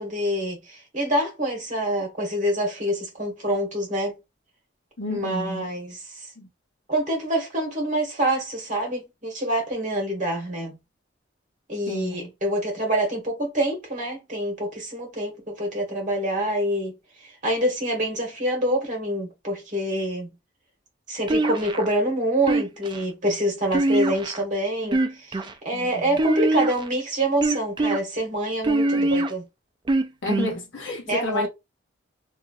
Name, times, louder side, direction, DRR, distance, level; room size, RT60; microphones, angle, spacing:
voice 1, 0.0-4.1 5.1-6.3 6.9-10.8 11.7-17.0 17.4-20.3 21.1-25.4 25.6-29.4 31.1-31.5, right 1 dB, 40° right, 1.3 m, -26 dB
voice 2, 5.0-5.7 6.4-6.5 11.9-12.3 25.7-26.2 28.8-29.2 30.2-31.5, left 1 dB, 70° left, 0.9 m, -31 dB
sound 1, 21.3-21.9 22.5-23.0 23.7-24.4 24.8-25.5 26.2-26.9 27.4-28.0 28.6-29.3 29.9-30.5, right 2 dB, 25° right, 0.3 m, -23 dB
3.1 x 2.5 x 2.4 m
head